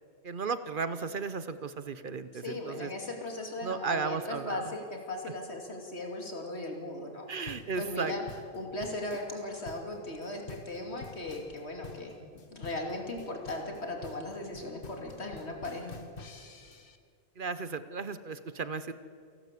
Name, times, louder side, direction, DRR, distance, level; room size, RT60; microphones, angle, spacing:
voice 1, 0.2-2.9 3.6-4.7 7.3-8.1 17.4-18.9, right 5 dB, 55° right, 13 dB, 1.0 m, -35 dB
voice 2, 2.3-8.2 8.5-12.2 12.5-16.0, left 2 dB, 80° left, 2 dB, 3.0 m, -38 dB
sound 1, 7.5-17.0, left 4 dB, 55° left, 1.4 m, -48 dB
29.0 x 11.5 x 8.3 m, 2.2 s
omnidirectional pair, 1.1 m